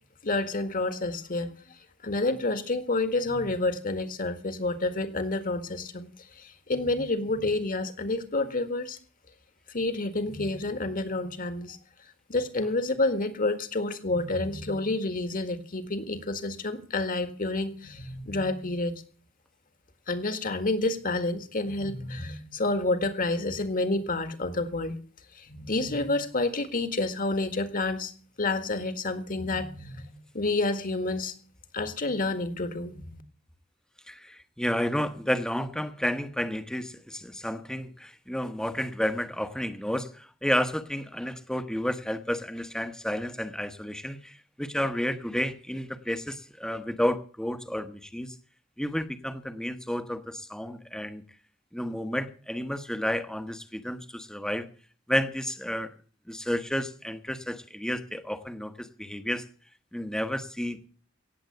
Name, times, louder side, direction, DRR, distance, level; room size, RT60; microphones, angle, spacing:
voice 1, 0.2-1.5 2.0-6.1 6.4-9.0 9.7-11.8 12.3-18.9 20.1-25.0 25.4-28.1 28.4-31.3 31.7-33.0, left 2 dB, 45° left, 10 dB, 1.8 m, -29 dB
voice 2, 34.1-48.3 48.8-51.2 51.7-54.7 55.1-55.9 56.3-59.5 59.9-60.9, equal, 5° left, 10 dB, 1.1 m, -31 dB
17.5 x 8.0 x 7.8 m, 0.42 s
head